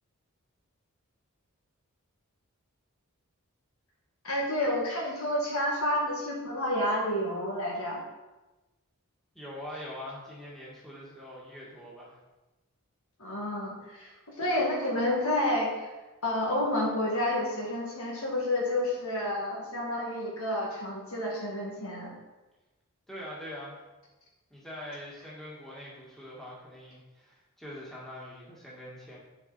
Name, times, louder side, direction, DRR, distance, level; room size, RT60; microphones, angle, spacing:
voice 1, 4.2-8.0 13.2-15.9 16.2-22.1, left 1 dB, 65° left, -2 dB, 1.9 m, -30 dB
voice 2, 9.3-12.2 23.1-23.8 24.5-29.2, left 1 dB, ahead, -6 dB, 1.9 m, -43 dB
9.6 x 4.8 x 4.2 m, 1.1 s
head